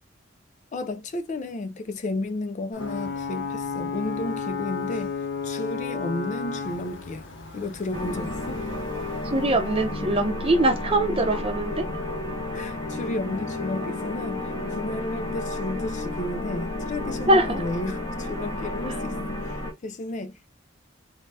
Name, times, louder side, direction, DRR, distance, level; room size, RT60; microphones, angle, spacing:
voice 1, 0.7-5.1 5.4-7.3 7.5-8.6 12.5-19.2 19.4-20.5, left 2 dB, 40° left, 0.4 m, -33 dB
Ocean / Boat Water vehicle / Alarm, 2.7-10.3, left 5 dB, 65° left, 0.8 m, -34 dB
sound 1, 7.9-19.7, left 2 dB, 20° left, 0.8 m, -31 dB
voice 2, 9.2-11.8 17.3-17.6, right 1 dB, 30° right, 0.7 m, -22 dB
2.7 x 2.2 x 3.2 m
head